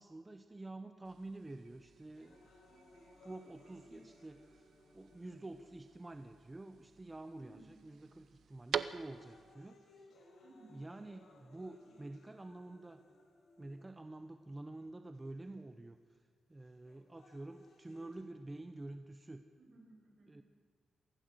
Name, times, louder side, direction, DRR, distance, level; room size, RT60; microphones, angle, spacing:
voice 1, 0.0-2.5 3.2-10.1 10.7-13.0 13.6-19.4 20.3-20.4, right 2 dB, 15° right, 8 dB, 0.8 m, -49 dB
sound 1, 1.0-9.5, right 8 dB, 70° right, 0.7 m, -47 dB
sound 2, 2.1-6.2 6.9-7.0 7.8-8.2 8.6-14.2 15.1-15.2 16.6-18.2, left 2 dB, 70° left, 4.8 m, -63 dB
voice 2, 7.4-8.0 10.4-10.8 19.6-20.4, right 2 dB, 50° right, -2 dB, 7.3 m, -60 dB
24.0 x 16.0 x 7.8 m, 2.1 s
wide cardioid pair, 170°, 0 cm